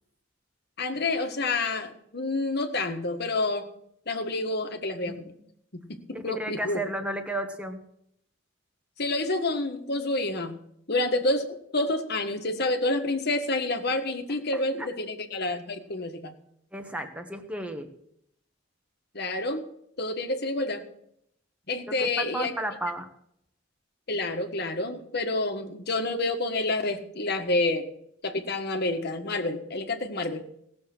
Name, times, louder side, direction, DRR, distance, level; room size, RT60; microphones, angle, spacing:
voice 1, 0.8-3.7 4.1-5.3 5.7-6.8 9.0-10.5 10.9-16.3 19.1-19.7 20.0-20.8 21.7-22.5 24.1-27.9 28.2-30.5, left 2 dB, 55° left, 5 dB, 1.6 m, -28 dB
voice 2, 6.1-7.8 14.5-14.9 16.7-17.9 21.9-23.1, right 1 dB, 5° right, 5 dB, 1.5 m, -33 dB
18.0 x 7.0 x 6.2 m, 0.71 s
head